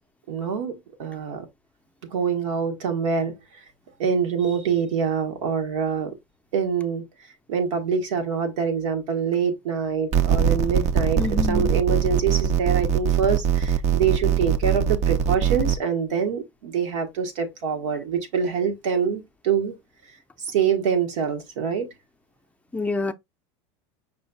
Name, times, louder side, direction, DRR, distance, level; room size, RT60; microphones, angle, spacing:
voice 1, 0.3-1.5 2.1-3.4 4.0-6.1 6.5-7.0 7.5-11.2 11.5-19.7 20.4-21.9, right 6 dB, 85° right, 1.4 m, -25 dB
sound 1, 10.1-15.8, right 8 dB, 45° right, 0.6 m, -22 dB
voice 2, 11.2-11.7 22.7-23.1, left 3 dB, 10° left, 0.5 m, -26 dB
5.3 x 2.3 x 4.0 m
supercardioid pair, 110°, 16 cm